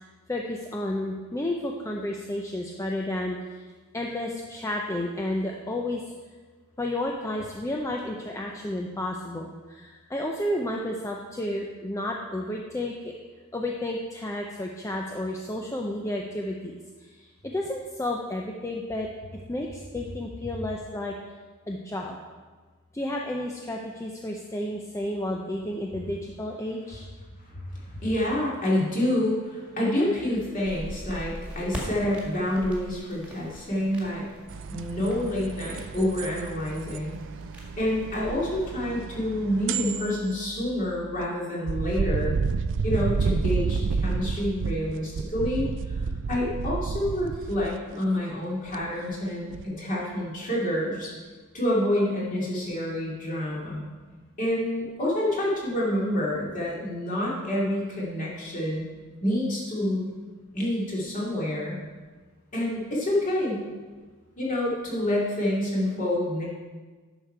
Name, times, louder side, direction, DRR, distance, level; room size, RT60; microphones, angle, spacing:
voice 1, 0.3-3.4 3.9-6.0 6.8-13.1 13.5-16.8 17.4-19.1 19.5-21.1 21.7-22.2 22.9-27.1, left 1 dB, 15° left, 0 dB, 0.5 m, -31 dB
voice 2, 27.5-34.3 34.7-37.2 37.8-42.4 42.8-46.0 46.3-51.1 51.5-53.9 54.4-58.9 59.2-60.1 60.5-61.8 62.5-63.6 64.4-66.4, left 1 dB, 35° left, -5 dB, 2.4 m, -28 dB
sound 1, 30.6-38.7, equal, 5° right, 1.9 m, -41 dB
sound 2, 34.5-41.3 41.7-47.7 48.7-49.1 49.5-49.6, right 5 dB, 55° right, 0.4 m, -31 dB
10.5 x 6.4 x 4.5 m, 1.4 s
head